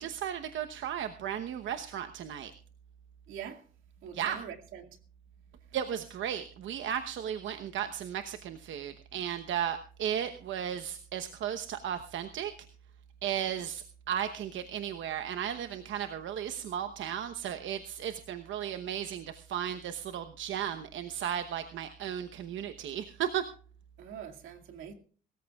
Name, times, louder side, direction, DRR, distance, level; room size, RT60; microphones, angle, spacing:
voice 1, 0.0-2.5 4.1-4.4 5.7-12.5 13.2-23.4, right 9 dB, 75° right, 1.0 m, -35 dB
voice 2, 3.3-3.6 4.0-5.0 24.0-24.9, right 8 dB, 90° right, 2.3 m, -44 dB
23.0 x 14.0 x 2.4 m
cardioid pair, 90°, 20 cm